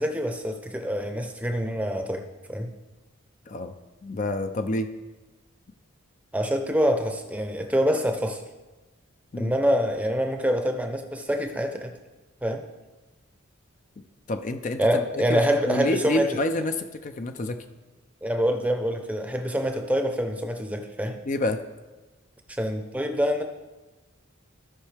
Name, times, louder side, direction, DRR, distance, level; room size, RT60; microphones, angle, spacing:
voice 1, 0.0-2.2 2.5-2.7 6.3-8.4 9.4-11.9 12.4-12.6 14.8-16.4 18.2-21.2 22.5-23.4, equal, 5° right, 5 dB, 0.6 m, -26 dB
voice 2, 4.0-4.9 9.3-9.5 14.0-17.6 21.3-21.6, left 1 dB, 35° left, 7 dB, 0.4 m, -28 dB
16.0 x 5.5 x 3.4 m, 1.2 s
head